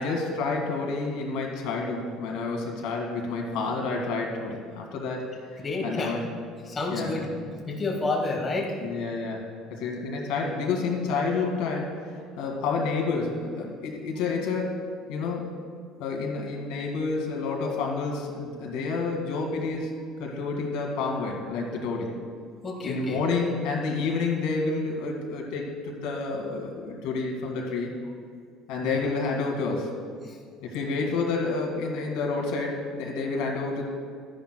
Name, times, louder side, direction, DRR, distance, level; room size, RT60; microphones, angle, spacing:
voice 1, 0.0-5.3 5.5-6.2 6.9-7.1 8.8-14.8 15.1-15.6 16.0-19.9 20.2-22.1 22.8-27.9 28.7-29.9 30.6-33.8, left 4 dB, 80° left, 0 dB, 2.0 m, -29 dB
voice 2, 5.6-6.1 6.6-7.3 7.7-8.8 22.6-23.2 28.8-29.1 30.3-30.4, left 2 dB, 25° left, -1 dB, 1.3 m, -30 dB
13.5 x 10.5 x 2.3 m, 2.1 s
cardioid pair, 145°, 0 cm